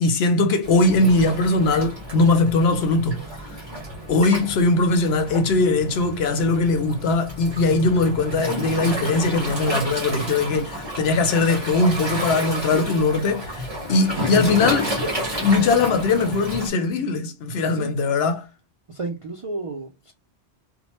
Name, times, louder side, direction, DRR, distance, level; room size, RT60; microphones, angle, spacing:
voice 1, 0.0-3.2 4.1-13.6 13.9-14.9 15.4-18.4, left 3 dB, 70° left, 0.8 m, -20 dB
Waves surf, 0.6-16.7, equal, 25° right, 1.2 m, -31 dB
voice 2, 18.9-20.1, right 3 dB, 55° right, 0.3 m, -32 dB
3.1 x 2.2 x 2.8 m
omnidirectional pair, 1.2 m